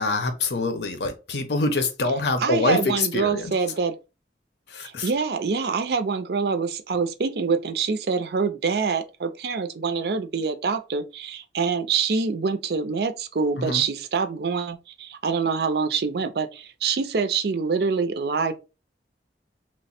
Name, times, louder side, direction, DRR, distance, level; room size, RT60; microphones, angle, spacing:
voice 1, 0.0-3.5 4.7-5.1 13.6-13.8, left 3 dB, 70° left, 0.7 m, -25 dB
voice 2, 2.4-4.0 4.8-18.5, right 5 dB, 60° right, 0.4 m, -25 dB
3.0 x 2.1 x 4.1 m
head